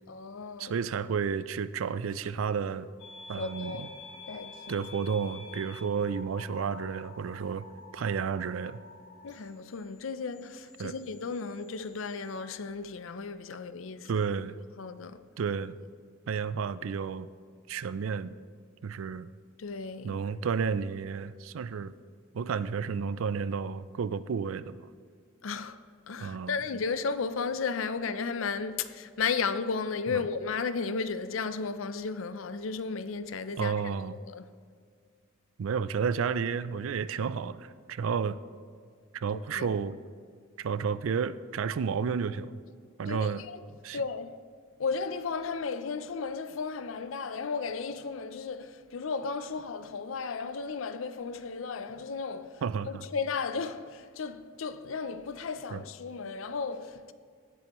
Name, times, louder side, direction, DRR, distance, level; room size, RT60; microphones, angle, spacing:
voice 1, 0.1-0.7 3.4-3.9 4.3-4.8 9.2-14.1 14.8-15.2 19.6-20.2 25.4-25.8 26.1-33.7 34.2-34.5 39.3-39.7 43.1-43.6 43.9-44.4 44.8-52.6 53.1-57.1, left 5 dB, 85° left, 0.5 m, -34 dB
voice 2, 0.6-2.9 3.3-3.9 4.7-7.7 7.9-8.8 10.8-10.9 14.1-14.6 15.4-15.8 16.3-17.3 17.7-18.3 18.8-19.3 20.0-21.9 22.3-24.9 26.2-26.6 30.1-30.2 33.6-34.2 35.6-38.4 39.1-40.0 40.6-42.6 43.0-43.4 43.8-44.0 52.6-53.1 55.7-55.8, right 6 dB, 90° right, 0.4 m, -31 dB
sound 1, 3.0-12.4, left 3 dB, 60° left, 1.7 m, -49 dB
17.0 x 7.7 x 3.0 m
head